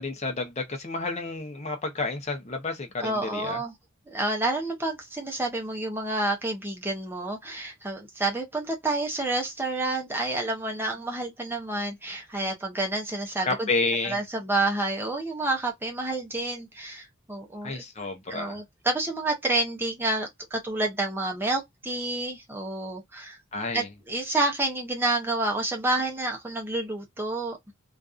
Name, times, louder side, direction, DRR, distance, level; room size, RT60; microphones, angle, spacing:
voice 1, 0.0-3.6 13.5-14.2 17.6-18.6 23.5-23.9, left 3 dB, 30° left, 0.6 m, -30 dB
voice 2, 3.0-3.7 4.1-13.7 14.0-17.8 18.3-23.4 23.7-27.6, right 2 dB, 10° right, 0.6 m, -29 dB
2.6 x 2.3 x 2.3 m
head